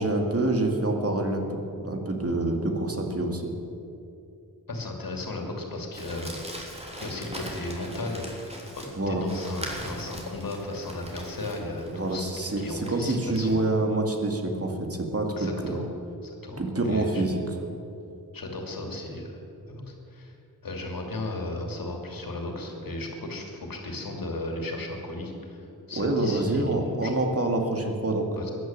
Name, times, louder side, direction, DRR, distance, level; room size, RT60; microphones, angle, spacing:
voice 1, 0.0-3.5 9.0-9.2 11.9-15.8 16.6-17.4 25.9-28.3, right 2 dB, 40° right, 3 dB, 2.3 m, -27 dB
voice 2, 4.7-6.7 7.0-8.3 8.8-12.2 12.6-13.6 15.4-15.9 16.2-17.2 18.3-19.3 19.7-20.3 20.6-25.6 25.9-27.2 28.4-28.5, left 2 dB, 65° left, 2 dB, 2.8 m, -35 dB
Crumpling crinkling, 5.9-13.5, equal, 15° right, 3.4 m, -41 dB
14.5 x 11.0 x 7.6 m, 2.8 s
cardioid pair, 50°, 38 cm